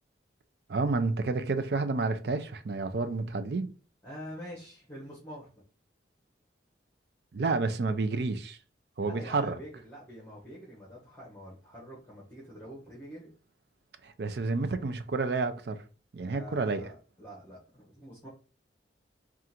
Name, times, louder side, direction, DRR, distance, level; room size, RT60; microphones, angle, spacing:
voice 1, 0.7-3.7 7.3-8.6 9.0-9.6 14.0-15.8 16.1-16.9, right 3 dB, 60° right, 0.5 m, -30 dB
voice 2, 4.0-5.6 9.0-13.3 16.3-18.3, equal, 10° left, 1.1 m, -46 dB
3.7 x 2.5 x 4.3 m
head